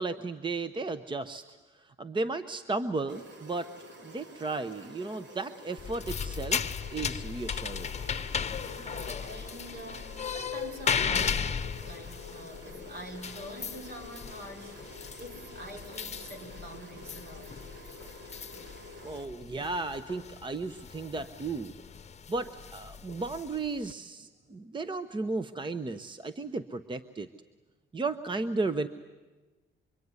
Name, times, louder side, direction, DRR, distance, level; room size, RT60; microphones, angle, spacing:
voice 1, 0.0-1.4 1.7-3.7 4.0-8.1 19.0-21.7 22.3-27.3 27.9-28.9, right 3 dB, 25° right, 12 dB, 0.9 m, -34 dB
sound 1, 3.1-19.3, left 1 dB, 70° right, 2.9 m, -49 dB
sound 2, 5.8-23.9, left 6 dB, 35° left, 0.9 m, -36 dB
voice 2, 8.6-14.8 15.2-17.5, equal, 55° right, 5 dB, 4.9 m, -45 dB
25.5 x 24.0 x 9.7 m, 1.2 s
cardioid pair, 90°, 20 cm